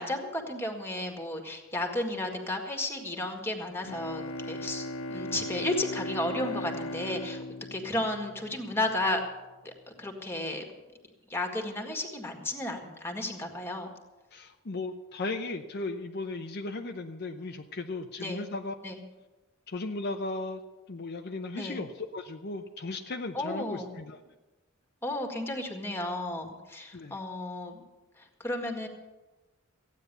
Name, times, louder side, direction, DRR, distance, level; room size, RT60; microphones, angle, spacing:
voice 1, 0.0-7.4 7.7-9.2 9.6-10.6 11.3-13.9 18.2-18.4 18.8-19.0 21.5-21.8 23.3-23.9 25.0-27.8 28.2-28.9, left 1 dB, 10° left, 3 dB, 1.8 m, -33 dB
Bowed string instrument, 3.8-8.8, left 1 dB, 75° left, 1.2 m, -38 dB
voice 2, 14.3-18.7 19.7-20.6 20.9-24.2 26.9-27.2, left 2 dB, 50° left, 4 dB, 0.7 m, -36 dB
15.0 x 9.5 x 6.8 m, 1.1 s
head